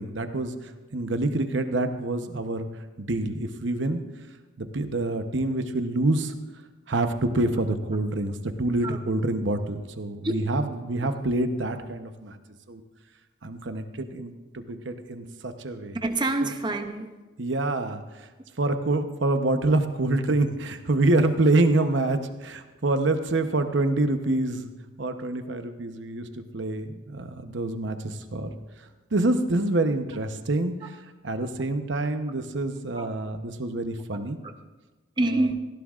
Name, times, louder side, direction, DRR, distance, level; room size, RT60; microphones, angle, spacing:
voice 1, 0.0-2.7 3.0-4.0 4.6-6.3 6.9-12.4 12.7-12.8 13.4-16.0 16.4-16.5 17.4-18.3 18.6-24.7 25.0-34.4, right 2 dB, 70° right, 8 dB, 0.9 m, -26 dB
voice 2, 16.0-17.1 32.9-33.1 34.4-34.5 35.2-35.5, right 2 dB, 25° right, 6 dB, 0.6 m, -26 dB
17.5 x 15.0 x 2.5 m, 1.2 s
head